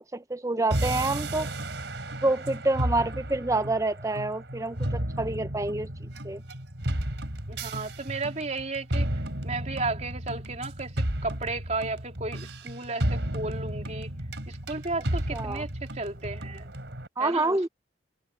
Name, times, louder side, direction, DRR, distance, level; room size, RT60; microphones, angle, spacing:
voice 1, 0.0-1.6 2.2-6.4 15.3-15.7 17.2-17.7, right 2 dB, 20° right, 0.7 m, -28 dB
sound 1, 0.7-17.1, right 1 dB, 80° right, 3.7 m, -33 dB
voice 2, 7.5-9.1 9.4-14.1 14.5-16.7 17.2-17.7, right 3 dB, 40° right, 3.5 m, -34 dB
head